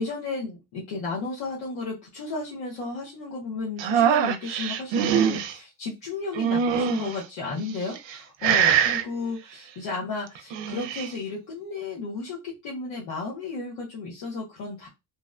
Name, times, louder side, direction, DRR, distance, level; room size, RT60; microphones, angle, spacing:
voice 1, 0.0-14.9, left 3 dB, 75° left, -4 dB, 0.9 m, -33 dB
sound 1, 3.8-5.5 6.3-7.2 7.8-8.2 8.4-9.0 10.4-11.1, right 8 dB, 65° right, 0.5 m, -23 dB
2.7 x 2.1 x 2.3 m, 0.25 s
cardioid pair, 70°, 49 cm